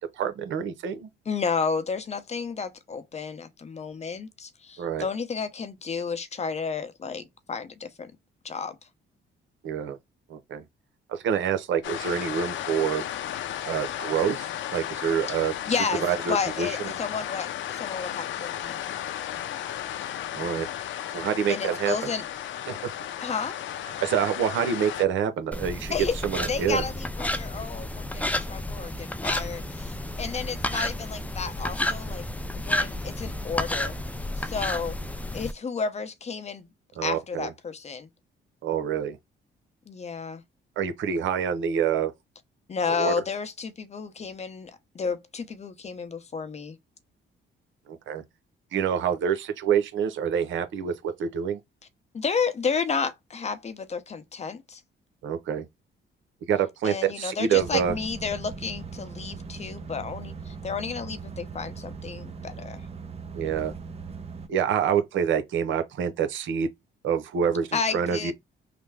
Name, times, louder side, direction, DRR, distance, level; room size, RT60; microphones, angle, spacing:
voice 1, 0.0-1.1 4.8-5.1 9.6-10.0 10.3-10.6 11.1-13.1 13.6-16.9 20.3-20.7 21.1-21.9 22.7-22.8 24.0-25.9 26.2-26.8 37.0-37.5 38.6-39.2 40.8-42.1 42.9-43.1 47.9-48.2 48.7-51.6 55.2-55.6 56.5-57.9 63.3-63.7 64.5-66.7 67.0-68.3, right 8 dB, 75° right, 0.7 m, -27 dB
voice 2, 1.3-8.1 8.4-8.8 15.3-15.4 15.7-16.0 16.3-18.8 21.5-22.2 23.2-23.6 25.9-26.2 26.5-32.3 32.5-34.0 34.4-35.0 35.3-36.7 37.0-38.1 39.9-40.4 42.7-46.8 52.1-54.8 56.8-62.8 67.7-68.3, left 5 dB, 35° left, 0.7 m, -31 dB
sound 1, 11.8-25.1, left 11 dB, 70° left, 0.5 m, -34 dB
sound 2, 25.5-35.5, left 1 dB, 5° left, 0.4 m, -31 dB
sound 3, 57.5-64.5, right 5 dB, 30° right, 0.7 m, -39 dB
3.3 x 2.0 x 3.3 m
cardioid pair, 90°, 20 cm